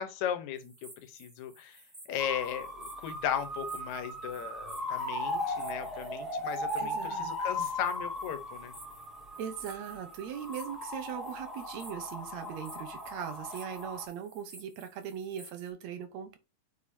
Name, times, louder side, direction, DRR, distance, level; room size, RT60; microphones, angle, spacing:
voice 1, 0.0-1.8 2.1-8.7, left 9 dB, 80° left, 2.2 m, -36 dB
sound 1, 0.6-15.7, right 1 dB, 20° right, 2.5 m, -55 dB
sound 2, 2.2-14.1, left 1 dB, ahead, 1.5 m, -37 dB
voice 2, 6.8-7.7 9.4-16.4, right 8 dB, 70° right, 2.2 m, -40 dB
8.5 x 5.1 x 2.8 m
omnidirectional pair, 3.3 m